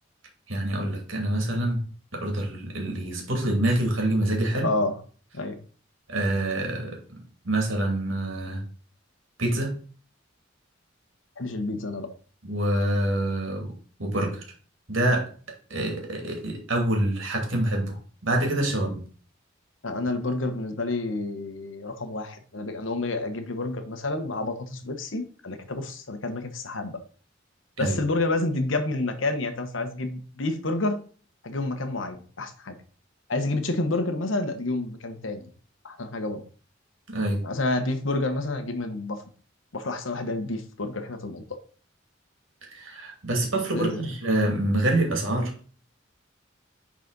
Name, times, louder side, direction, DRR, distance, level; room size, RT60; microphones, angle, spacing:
voice 1, 0.5-1.8 2.1-4.7 6.1-7.0 7.4-8.6 9.4-9.7 12.4-13.7 14.0-14.4 14.9-15.3 15.7-18.0 18.2-19.0 27.8-28.0 37.1-37.4 42.7-45.5, right 1 dB, 90° right, 2 dB, 2.6 m, -26 dB
voice 2, 4.6-5.0 5.3-5.6 11.4-12.1 19.8-27.0 27.8-31.0 31.4-32.7 33.3-35.5 35.8-36.4 37.4-39.2 39.7-41.6 43.7-44.0, left 2 dB, 80° left, 8 dB, 1.2 m, -29 dB
9.9 x 4.2 x 4.0 m, 0.42 s
head